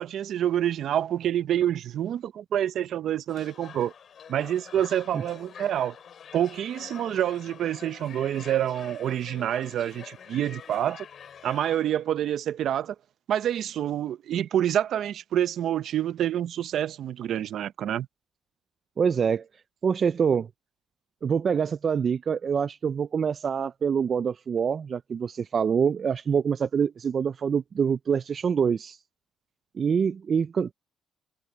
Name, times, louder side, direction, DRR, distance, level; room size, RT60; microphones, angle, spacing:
voice 1, 0.0-3.9 4.3-5.9 6.3-11.1 11.4-12.9 13.3-18.1, right 11 dB, 70° right, 0.8 m, -27 dB
sound 1, 3.3-12.0, left 8 dB, 60° left, 3.8 m, -46 dB
voice 2, 19.0-19.5 19.8-20.5 21.2-29.0 29.7-30.7, right 6 dB, 50° right, 0.3 m, -25 dB
cardioid pair, 90°, 0 cm